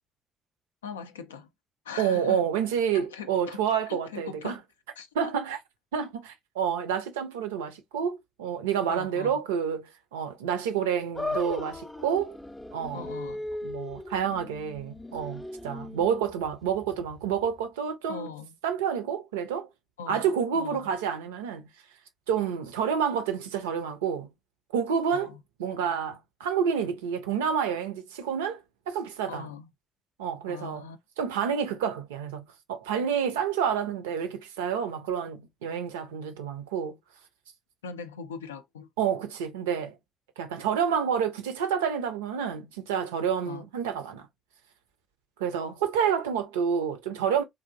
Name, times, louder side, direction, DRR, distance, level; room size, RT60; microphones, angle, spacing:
voice 1, 0.8-1.5 1.9-2.4 2.9-3.6 3.9-4.6 5.0-5.3 8.9-9.4 12.9-13.5 18.1-18.5 20.0-20.9 25.1-25.4 29.3-29.7 30.5-31.0 37.8-38.9 43.5-43.7, left 6 dB, 85° left, 0.3 m, -40 dB
voice 2, 2.0-4.6 5.2-5.6 5.9-12.4 12.7-13.1 13.6-18.3 18.6-19.7 20.1-21.7 22.3-24.3 24.7-25.3 25.6-28.6 28.9-29.5 30.2-30.9 31.2-32.4 32.7-37.0 39.0-39.9 40.4-44.2 45.4-47.4, right 7 dB, 80° right, 0.4 m, -29 dB
sound 1, 11.1-17.6, left 2 dB, 15° left, 0.5 m, -38 dB
3.4 x 2.5 x 2.4 m
figure-of-eight pair, 40°, 0 cm